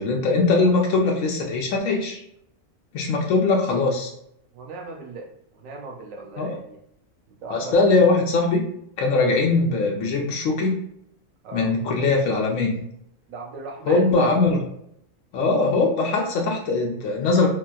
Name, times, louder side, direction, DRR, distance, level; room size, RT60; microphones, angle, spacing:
voice 1, 0.0-2.2 2.9-4.1 6.4-6.6 7.5-8.6 9.0-10.8 11.5-12.7 13.9-14.6 15.3-17.5, left 3 dB, 85° left, 0 dB, 1.0 m, -21 dB
voice 2, 4.5-6.8 7.3-8.1 11.4-11.7 13.3-14.3, right 3 dB, 85° right, 0 dB, 1.0 m, -38 dB
3.7 x 2.4 x 2.2 m, 0.73 s
omnidirectional pair, 1.3 m